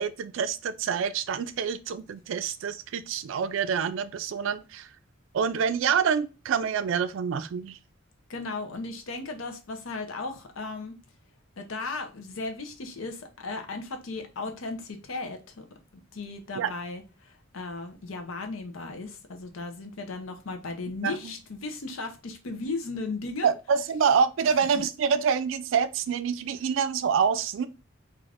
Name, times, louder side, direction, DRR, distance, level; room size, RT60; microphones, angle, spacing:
voice 1, 0.0-4.9 5.3-7.8 16.6-16.7 21.0-21.3 23.4-27.7, right 6 dB, 70° right, 0.3 m, -26 dB
voice 2, 8.3-11.0 11.6-15.6 15.9-23.5 24.7-24.8, left 3 dB, 85° left, 0.6 m, -36 dB
3.3 x 2.4 x 2.4 m
head